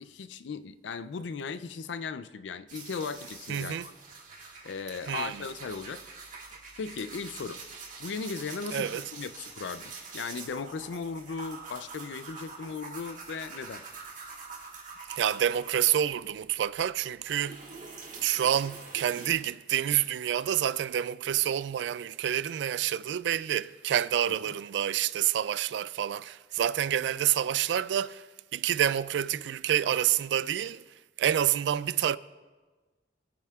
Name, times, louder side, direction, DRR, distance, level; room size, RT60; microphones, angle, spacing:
voice 1, 0.0-3.9 4.3-6.0 6.8-7.6 8.0-13.8 24.3-24.4, left 5 dB, 85° left, 0.4 m, -37 dB
sound 1, 2.7-16.4 16.8-19.4, right 4 dB, 45° right, 1.8 m, -45 dB
voice 2, 3.5-3.9 5.1-5.5 8.7-9.0 15.2-17.6 18.2-28.2 28.5-30.8 31.2-32.2, right 10 dB, 75° right, 0.3 m, -28 dB
20.5 x 8.8 x 2.4 m
head